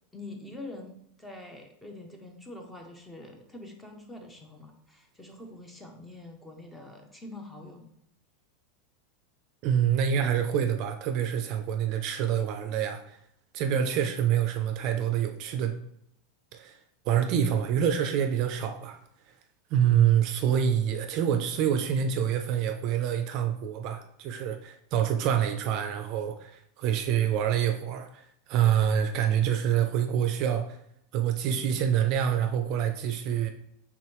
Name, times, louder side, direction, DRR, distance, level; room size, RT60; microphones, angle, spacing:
voice 1, 0.1-7.9, left 2 dB, 5° left, 3 dB, 0.5 m, -45 dB
voice 2, 9.6-13.2 13.5-15.7 16.5-16.8 17.1-19.0 19.7-30.8 31.1-33.5, right 9 dB, 40° right, 7 dB, 0.4 m, -26 dB
4.8 x 3.5 x 3.0 m, 0.72 s
supercardioid pair, 160°, 0 cm